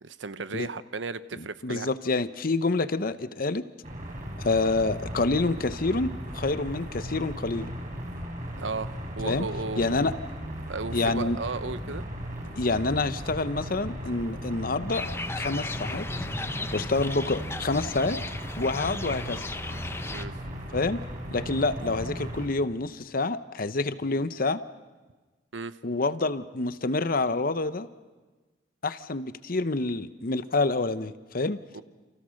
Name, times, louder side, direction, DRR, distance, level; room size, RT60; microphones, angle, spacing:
voice 1, 0.0-1.9 8.6-8.9 9.2-10.1 10.7-12.0 20.1-20.3 25.5-25.8 31.7-31.8, right 3 dB, 90° right, 13 dB, 1.0 m, -34 dB
voice 2, 1.4-3.7 4.4-7.7 9.2-9.5 9.8-10.1 10.9-11.4 12.6-15.1 15.3-16.1 16.7-18.2 18.6-19.5 20.7-21.0 21.3-24.6 25.8-27.9 28.8-31.6, left 3 dB, 50° left, 13 dB, 0.9 m, -27 dB
sound 1, 3.8-22.5, equal, 45° right, 6.2 m, -37 dB
sound 2, 14.9-20.2, left 2 dB, 15° left, 0.8 m, -36 dB
29.0 x 28.5 x 6.5 m, 1.3 s
head